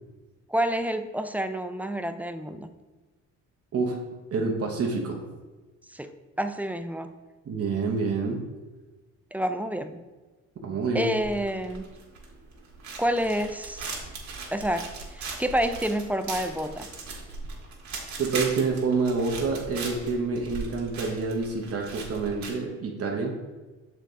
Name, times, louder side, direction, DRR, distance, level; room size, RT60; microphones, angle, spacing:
voice 1, 0.5-2.7 5.9-6.1 6.4-7.1 9.3-10.0 10.9-11.9 13.0-13.9 14.5-16.9, equal, 5° right, 8 dB, 0.3 m, -28 dB
voice 2, 3.7-4.0 4.3-5.2 7.5-8.5 10.6-11.1 18.2-23.4, right 4 dB, 50° right, 0 dB, 1.1 m, -27 dB
sound 1, 11.2-22.5, right 4 dB, 65° right, 1.6 m, -39 dB
6.3 x 4.0 x 3.7 m, 1.2 s
cardioid pair, 90°, 30 cm